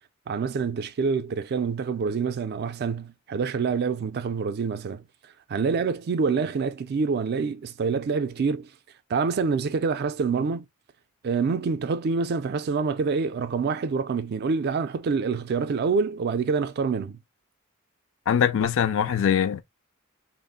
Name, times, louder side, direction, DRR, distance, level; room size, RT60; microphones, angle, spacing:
voice 1, 0.3-5.0 5.5-8.7 9.1-10.7 11.2-17.2, right 5 dB, 50° right, 0.3 m, -26 dB
voice 2, 18.3-19.6, left 8 dB, 60° left, 0.3 m, -22 dB
2.3 x 2.0 x 3.6 m
head